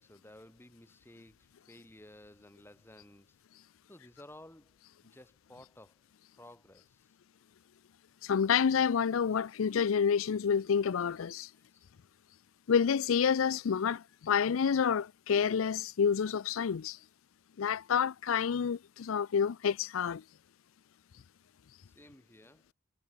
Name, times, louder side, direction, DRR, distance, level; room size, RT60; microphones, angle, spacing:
voice 1, 0.0-3.4 3.9-6.0 6.3-7.2 11.5-11.9 21.8-22.7, left 1 dB, 10° left, 5.9 m, -55 dB
voice 2, 8.2-11.5 12.7-17.0 17.6-20.2, left 7 dB, 85° left, 0.4 m, -28 dB
head